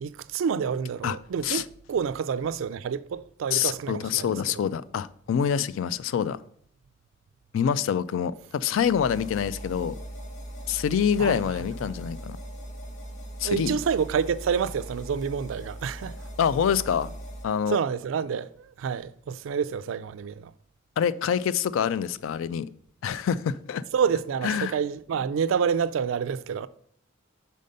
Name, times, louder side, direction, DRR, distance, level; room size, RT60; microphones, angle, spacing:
voice 1, 0.0-4.3 11.2-11.5 13.4-16.1 17.7-20.5 23.9-26.7, right 7 dB, 70° right, 0.3 m, -28 dB
voice 2, 3.5-6.4 7.5-10.0 10.7-12.4 13.4-13.8 16.4-17.1 17.4-17.8 21.0-22.7 23.0-23.8 24.4-24.7, left 8 dB, 70° left, 0.3 m, -26 dB
sound 1, 8.7-17.5, right 1 dB, 40° left, 1.0 m, -40 dB
5.2 x 4.2 x 5.3 m
head